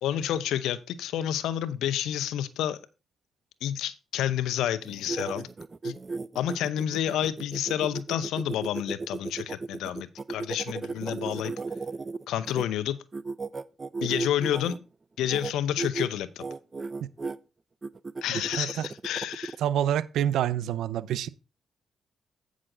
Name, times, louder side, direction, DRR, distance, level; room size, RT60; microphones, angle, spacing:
voice 1, 0.0-2.8 3.6-5.5 5.8-5.9 6.3-11.5 12.3-13.0 14.0-14.8 15.2-16.4 18.2-19.6, left 11 dB, 85° left, 0.7 m, -29 dB
sound 1, 4.8-12.6 13.1-14.8 15.2-15.5 15.8-16.1 16.4-17.4 17.8-19.6, right 4 dB, 35° right, 0.6 m, -35 dB
voice 2, 18.3-18.9 19.6-21.3, right 10 dB, 85° right, 0.5 m, -27 dB
9.1 x 6.2 x 3.8 m
cardioid pair, 65°, 0 cm